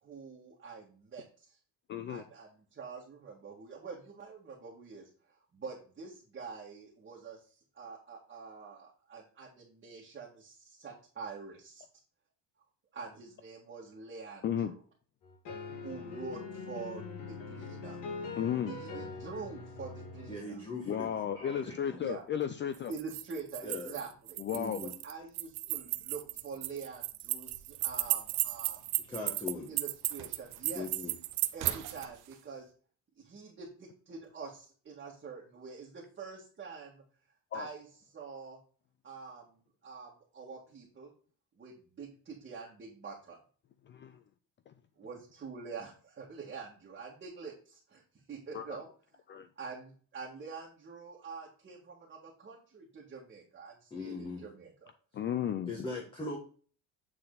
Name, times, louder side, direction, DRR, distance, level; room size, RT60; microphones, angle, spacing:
voice 1, 0.0-1.6 2.1-5.1 5.5-11.8 12.9-14.8 15.8-18.0 18.7-20.6 22.0-22.2 22.9-24.4 24.8-28.8 29.7-30.9 31.5-32.7 33.2-37.0 37.5-37.9 38.1-38.6 39.0-41.1 41.6-43.4 45.0-48.0 48.3-48.9 49.6-54.9, right 5 dB, 30° right, -4 dB, 1.9 m, -46 dB
voice 2, 1.9-2.2 14.4-14.7 18.4-18.7 20.9-22.9 24.4-24.8 37.5-37.7 43.9-44.2 44.7-44.8 48.5-48.8 49.3-49.5 55.1-55.7, left 9 dB, 30° left, 10 dB, 0.4 m, -34 dB
sound 1, 15.2-20.4, left 4 dB, 60° left, 1.9 m, -42 dB
voice 3, 20.3-22.0 23.6-24.0 24.5-24.9 29.1-29.7 30.7-31.2 53.9-54.5 55.7-56.4, left 2 dB, 15° left, -1 dB, 1.5 m, -40 dB
sound 2, 22.7-32.0, right 17 dB, 75° right, 0.7 m, -35 dB
sound 3, 27.5-32.5, right 8 dB, 55° right, 1.0 m, -50 dB
8.7 x 4.2 x 4.0 m, 0.41 s
cardioid pair, 135°, 36 cm